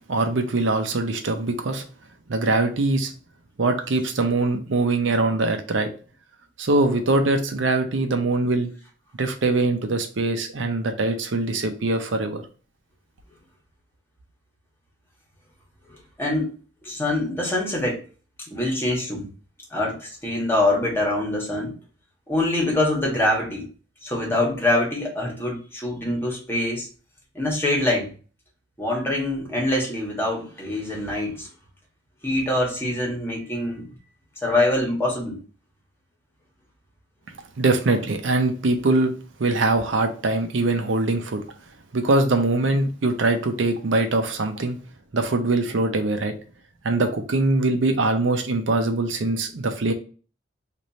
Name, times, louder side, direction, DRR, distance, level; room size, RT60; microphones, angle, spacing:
voice 1, 0.1-1.8 2.3-3.1 3.6-5.9 6.6-8.7 9.2-12.4 37.6-39.1 39.4-41.4 41.9-44.8 45.1-46.3 46.8-49.9, right 2 dB, 85° right, 6 dB, 0.7 m, -22 dB
voice 2, 16.2-16.5 16.8-18.0 18.5-19.3 19.7-21.7 22.3-23.7 24.0-26.9 27.3-28.1 28.8-31.5 32.2-33.9 34.4-35.4, left 1 dB, 15° left, -2 dB, 1.4 m, -24 dB
3.2 x 2.6 x 4.0 m, 0.37 s
head